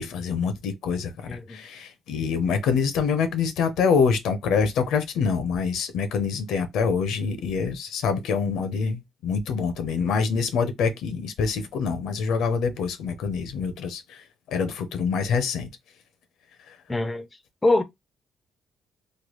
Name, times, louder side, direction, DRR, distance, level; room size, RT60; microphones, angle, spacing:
voice 1, 0.0-15.7 16.7-16.8, left 5 dB, 85° left, 0.6 m, -26 dB
voice 2, 1.3-1.6 16.9-17.3 17.6-17.8, left 2 dB, 15° left, 0.4 m, -23 dB
3.2 x 2.2 x 3.0 m
cardioid pair, 125°, 0 cm